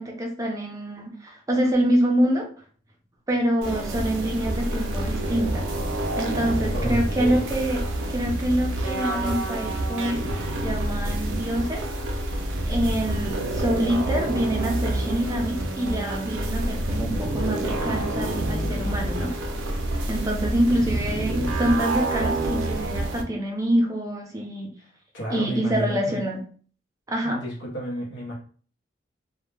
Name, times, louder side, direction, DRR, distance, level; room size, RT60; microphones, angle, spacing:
voice 1, 0.0-2.5 3.3-5.7 6.2-7.8 8.1-10.2 10.6-11.8 12.7-19.3 20.1-24.8 25.3-26.4 27.1-27.4, equal, 15° right, 0 dB, 0.4 m, -26 dB
sound 1, 3.6-23.2, right 1 dB, 85° right, 0.5 m, -27 dB
voice 2, 6.7-7.5 25.1-26.2 27.2-28.3, equal, 75° left, -4 dB, 0.7 m, -31 dB
2.1 x 2.0 x 3.1 m, 0.44 s
head